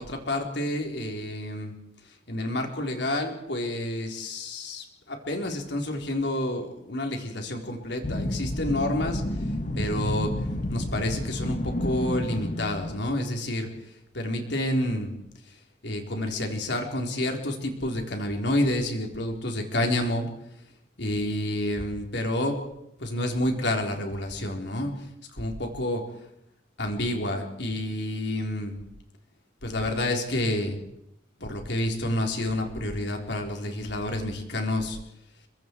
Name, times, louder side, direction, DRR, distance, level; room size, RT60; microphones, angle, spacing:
voice 1, 0.0-1.7 2.3-9.2 9.7-10.3 10.7-13.7 14.1-15.1 15.8-20.3 21.0-22.6 23.0-24.9 25.3-26.0 26.8-28.8 29.6-30.8 31.4-35.0, left 1 dB, 65° left, 2 dB, 4.0 m, -29 dB
sound 1, 8.0-13.1, left 1 dB, 40° left, 1.3 m, -30 dB
30.0 x 24.0 x 4.7 m, 0.79 s
head